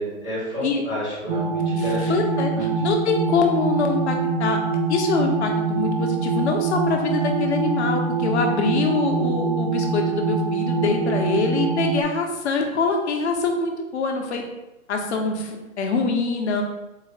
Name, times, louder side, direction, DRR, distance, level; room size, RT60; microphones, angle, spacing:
voice 1, 0.0-2.2 2.5-2.8, equal, 5° left, -29 dB, 0.3 m, -30 dB
sound 1, 1.3-12.0, right 4 dB, 50° right, 0.5 m, -24 dB
voice 2, 2.1-2.5 2.8-4.6 4.9-14.4 14.9-16.6, left 4 dB, 50° left, 3 dB, 0.8 m, -24 dB
3.9 x 2.1 x 3.9 m, 0.99 s
hypercardioid pair, 145°, 42 cm